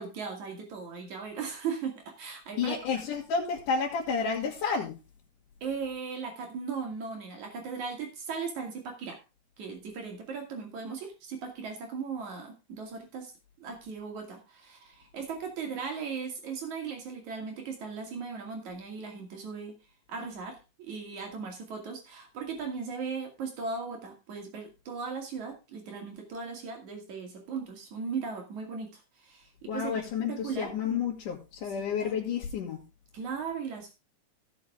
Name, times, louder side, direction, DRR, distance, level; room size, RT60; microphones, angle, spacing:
voice 1, 0.0-2.8 5.6-9.2 9.6-13.3 13.6-19.8 20.1-30.0 30.3-30.7 31.6-31.7 32.0-32.2 33.1-33.9, right 5 dB, 70° right, 2 dB, 3.8 m, -37 dB
voice 2, 2.6-4.9 29.7-32.8, left 6 dB, 85° left, -5 dB, 3.5 m, -30 dB
16.0 x 7.0 x 3.6 m, 0.28 s
omnidirectional pair, 3.5 m